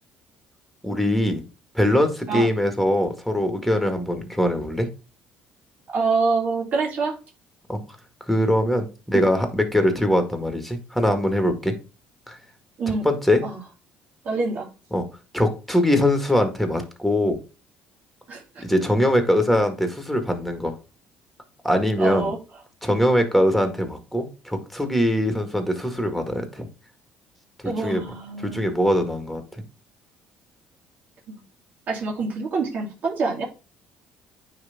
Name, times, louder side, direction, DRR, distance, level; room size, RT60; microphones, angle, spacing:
voice 1, 0.8-1.4 1.7-4.9 7.7-7.8 8.3-11.7 12.3-12.4 12.9-13.4 14.9-15.0 15.3-17.4 18.6-20.8 21.6-22.3 22.8-26.7 27.8-28.0 28.4-29.4, left 1 dB, ahead, 6 dB, 1.9 m, -22 dB
voice 2, 5.9-7.1 12.8-13.1 13.4-13.6 14.2-14.7 18.3-18.6 22.0-22.4 27.6-28.7 31.3-31.4 31.9-33.4, right 4 dB, 50° right, -1 dB, 2.4 m, -26 dB
9.5 x 3.4 x 3.6 m, 0.32 s
supercardioid pair, 90°, 3 cm